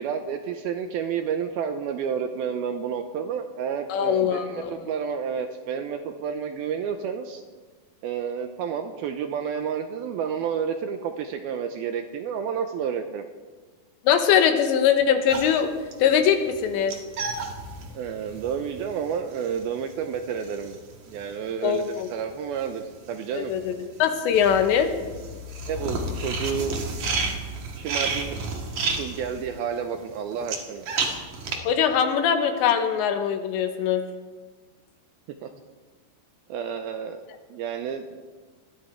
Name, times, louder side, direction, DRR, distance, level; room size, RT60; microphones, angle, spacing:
voice 1, 0.0-7.4 8.0-13.2 17.9-20.8 21.1-23.5 25.7-26.8 27.8-28.3 28.8-30.9 35.4-35.5 36.5-37.2 37.5-38.1, right 7 dB, 80° right, 6 dB, 2.3 m, -30 dB
voice 2, 3.9-4.9 14.0-15.7 16.0-16.9 21.6-22.1 23.3-24.9 31.6-34.0, left 8 dB, 85° left, 6 dB, 3.5 m, -22 dB
sound 1, 15.3-22.8 23.1-31.6, right 3 dB, 50° right, 2.5 m, -32 dB
20.0 x 14.5 x 4.6 m, 1.4 s
omnidirectional pair, 5.1 m